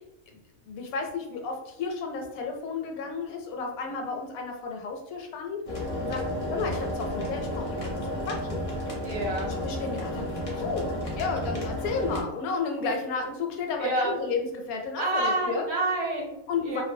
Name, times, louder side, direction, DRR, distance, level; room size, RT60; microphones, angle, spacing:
voice 1, 0.3-5.6 6.0-6.2 6.5-8.6 9.4-10.2 10.5-10.9 11.2-15.6 16.5-16.8, left 4 dB, 85° left, 2 dB, 1.0 m, -32 dB
sound 1, 5.7-12.2, left 1 dB, 65° left, 0.3 m, -32 dB
voice 2, 9.0-9.5 13.8-14.1 15.0-16.8, right 2 dB, 60° right, -2 dB, 0.8 m, -28 dB
2.5 x 2.0 x 2.6 m, 0.88 s
omnidirectional pair, 1.5 m